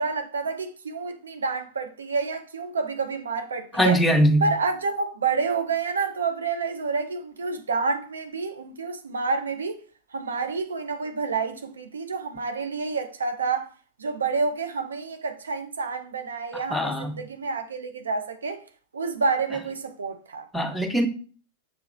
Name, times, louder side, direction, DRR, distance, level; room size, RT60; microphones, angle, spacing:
voice 1, 0.0-4.0 4.4-9.8 10.1-13.7 14.0-18.6 18.9-20.5, right 4 dB, 70° right, 0.5 m, -28 dB
voice 2, 3.7-4.5 16.5-17.2 20.5-21.1, right 1 dB, 5° left, 0.7 m, -22 dB
6.8 x 2.8 x 2.6 m
figure-of-eight pair, 90°, 0 cm